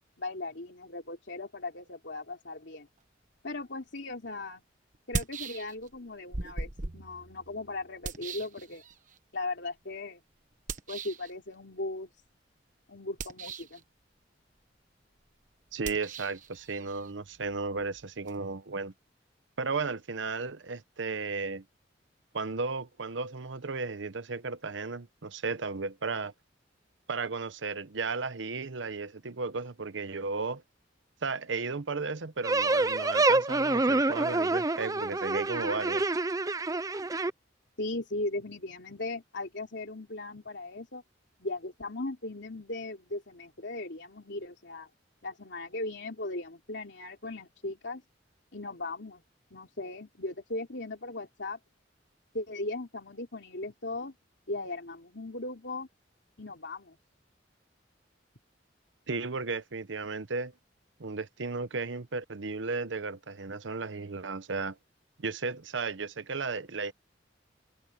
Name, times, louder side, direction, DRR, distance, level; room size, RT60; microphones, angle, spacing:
voice 1, 0.2-2.9 3.4-4.6 5.1-8.8 9.3-10.2 10.9-12.1 12.9-13.8 37.8-41.0 41.4-44.9 45.2-48.0 48.5-49.2 49.5-51.6 52.3-54.1 54.5-55.9 56.4-57.0, left 2 dB, 70° left, 3.4 m, -38 dB
sound 1, 4.0-4.1 4.9-6.0 6.3-9.2 10.7-11.3 13.1-13.8 15.8-18.4, right 3 dB, 45° right, 1.2 m, -39 dB
voice 2, 15.7-18.9 19.6-21.6 22.3-26.3 27.1-30.6 31.2-36.0 59.1-60.5 61.0-64.8 65.2-66.9, right 4 dB, 85° right, 0.9 m, -34 dB
sound 2, 32.4-37.3, right 2 dB, 20° right, 0.6 m, -27 dB
head